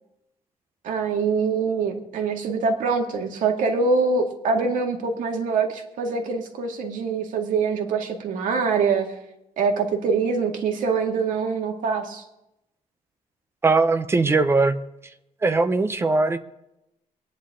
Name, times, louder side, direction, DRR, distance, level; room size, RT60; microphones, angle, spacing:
voice 1, 0.8-9.1 9.6-12.2, right 4 dB, 85° right, 3 dB, 2.0 m, -24 dB
voice 2, 13.6-14.8 15.4-16.4, right 3 dB, 20° right, 10 dB, 0.7 m, -20 dB
22.5 x 10.0 x 3.7 m, 0.87 s
cardioid pair, 175°, 13 cm